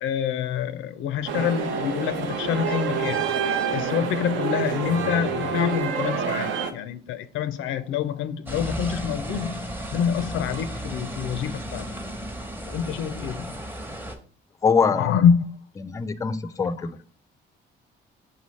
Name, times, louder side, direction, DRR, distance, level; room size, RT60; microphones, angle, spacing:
voice 1, 0.0-3.3 3.7-12.0 12.7-13.6 14.9-15.4, left 8 dB, 85° left, 0.4 m, -26 dB
sound 1, 1.3-6.7, right 6 dB, 75° right, 0.7 m, -27 dB
sound 2, 8.5-14.2, equal, 10° right, 0.8 m, -34 dB
voice 2, 14.6-15.2 15.8-17.0, left 5 dB, 15° left, 0.3 m, -23 dB
4.1 x 3.9 x 3.1 m
cardioid pair, 90°, 20 cm